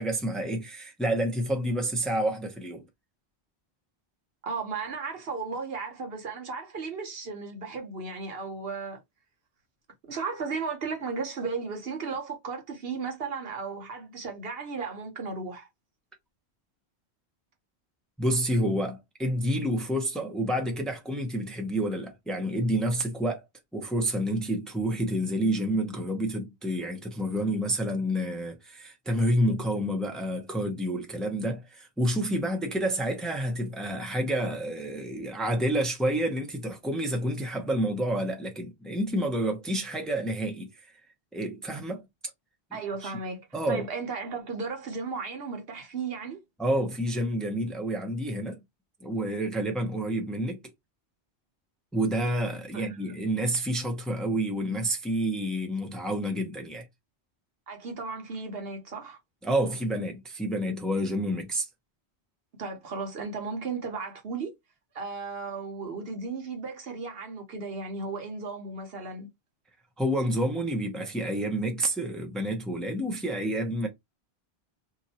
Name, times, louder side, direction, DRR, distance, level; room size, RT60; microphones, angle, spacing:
voice 1, 0.0-2.8 18.2-23.4 23.7-40.7 41.3-42.0 43.0-43.1 43.5-43.8 46.6-48.6 49.0-50.6 51.9-56.8 59.4-61.7 70.0-73.9, right 1 dB, ahead, 0.8 m, -29 dB
voice 2, 4.4-9.0 10.1-15.7 42.7-46.4 52.7-53.0 57.7-59.2 62.6-64.5 64.9-69.3, right 4 dB, 65° right, 1.1 m, -35 dB
2.8 x 2.5 x 4.1 m
omnidirectional pair, 1.1 m